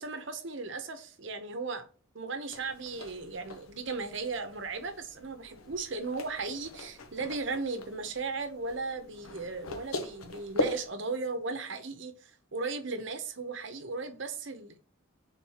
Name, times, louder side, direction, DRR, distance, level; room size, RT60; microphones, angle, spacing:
voice 1, 0.0-1.9 2.1-14.8, right 3 dB, 60° right, 0.8 m, -36 dB
sound 1, 2.5-10.9, left 1 dB, 85° left, 0.9 m, -40 dB
4.3 x 3.9 x 5.6 m
head